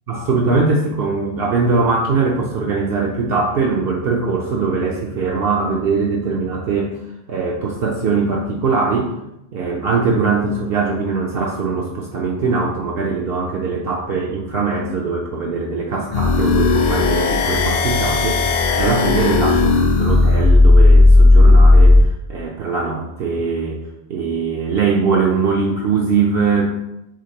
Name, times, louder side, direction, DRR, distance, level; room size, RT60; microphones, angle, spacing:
voice 1, 0.1-7.0 7.3-9.1 9.5-23.8 24.1-26.8, right 4 dB, 65° right, -2 dB, 0.8 m, -21 dB
sound 1, 16.1-22.0, left 2 dB, 55° left, 0.5 m, -13 dB
5.0 x 3.4 x 2.8 m, 0.87 s
omnidirectional pair, 1.2 m